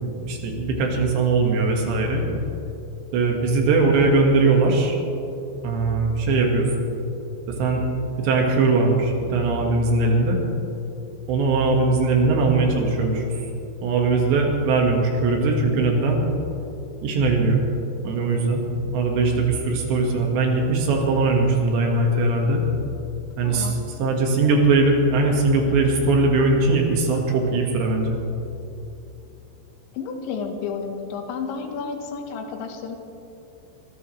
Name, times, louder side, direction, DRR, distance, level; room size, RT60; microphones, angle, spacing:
voice 1, 0.0-2.3 3.1-5.0 5.6-6.7 7.5-7.8 8.2-10.4 11.3-13.4 13.8-16.2 17.0-17.6 18.0-18.6 18.9-22.6 23.4-28.2, right 3 dB, 70° right, 1 dB, 3.7 m, -20 dB
voice 2, 23.4-23.7 29.9-33.0, left 5 dB, 80° left, 4 dB, 3.3 m, -31 dB
25.5 x 14.0 x 3.2 m, 2.8 s
omnidirectional pair, 5.5 m